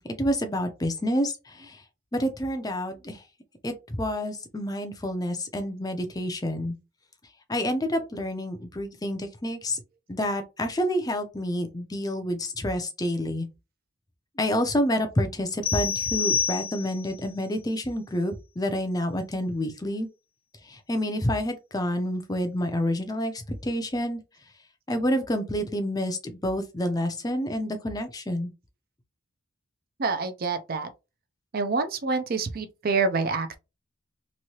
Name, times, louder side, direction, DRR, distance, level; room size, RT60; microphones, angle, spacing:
voice 1, 0.2-1.8 2.1-3.2 3.6-6.7 7.5-9.8 10.1-13.5 14.4-20.1 20.6-24.2 24.9-28.5, equal, 15° left, 0.5 m, -28 dB
sound 1, 15.6-17.1, left 7 dB, 70° left, 1.0 m, -27 dB
voice 2, 30.0-30.9 31.5-33.6, right 4 dB, 45° right, 0.5 m, -27 dB
3.0 x 2.7 x 2.8 m
head